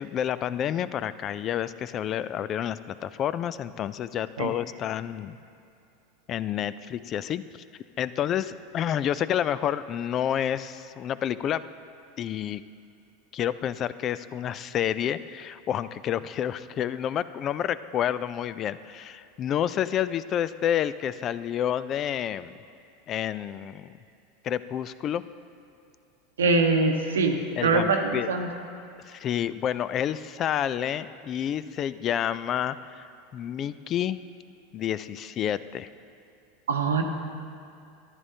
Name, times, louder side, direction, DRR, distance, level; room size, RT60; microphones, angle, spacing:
voice 1, 0.0-5.4 6.3-7.4 8.0-11.6 12.2-12.6 13.3-22.5 23.1-23.9 24.4-25.2 27.6-28.3 29.1-33.1 33.3-34.2 34.7-35.9, left 10 dB, 40° left, 16 dB, 0.3 m, -29 dB
voice 2, 26.4-28.0 28.3-28.5 36.7-37.0, right 3 dB, 80° right, 4 dB, 0.8 m, -23 dB
14.0 x 10.5 x 2.8 m, 2.5 s
hypercardioid pair, 85°, 0 cm